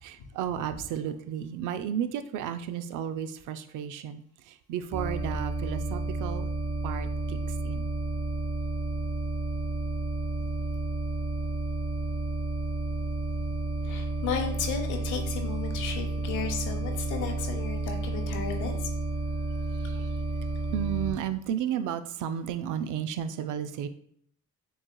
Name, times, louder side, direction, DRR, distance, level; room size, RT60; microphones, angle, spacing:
voice 1, 0.0-6.5 6.8-7.9 19.7-20.2 20.7-23.9, right 9 dB, 85° right, 11 dB, 0.5 m, -33 dB
sound 1, 4.9-21.1, right 2 dB, 20° right, 0.9 m, -31 dB
voice 2, 13.8-18.9, left 6 dB, 85° left, 4 dB, 0.9 m, -34 dB
6.9 x 3.1 x 2.2 m, 0.64 s
cardioid pair, 90°, 30 cm